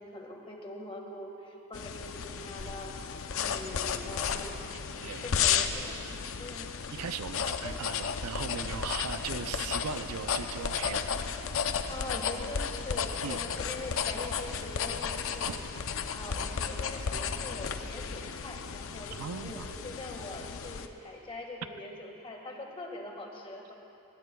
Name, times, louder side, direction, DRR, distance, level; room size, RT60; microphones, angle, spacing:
voice 1, 0.0-2.9 3.4-4.6 4.9-6.1 6.4-6.7 7.4-7.8 11.9-15.6 16.1-23.7, left 2 dB, 25° left, 1 dB, 1.6 m, -43 dB
sound 1, 1.7-20.9, left 7 dB, 65° left, 0.6 m, -34 dB
voice 2, 6.9-11.4 13.2-13.4 15.5-15.6 19.1-19.7, right 6 dB, 80° right, 10 dB, 0.5 m, -38 dB
20.5 x 19.0 x 2.3 m, 2.7 s
head